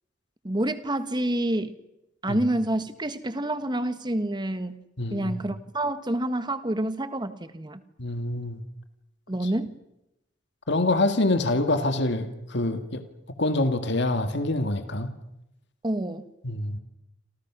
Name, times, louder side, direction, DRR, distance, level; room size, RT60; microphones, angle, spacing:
voice 1, 0.4-1.8 2.2-4.8 5.1-7.8 9.3-9.8 15.8-16.3, right 1 dB, 25° right, 11 dB, 1.5 m, -28 dB
voice 2, 5.0-5.4 8.0-8.6 10.7-13.0 13.4-15.1 16.4-16.8, left 2 dB, 65° left, 8 dB, 2.0 m, -25 dB
28.5 x 27.5 x 6.2 m, 0.89 s
head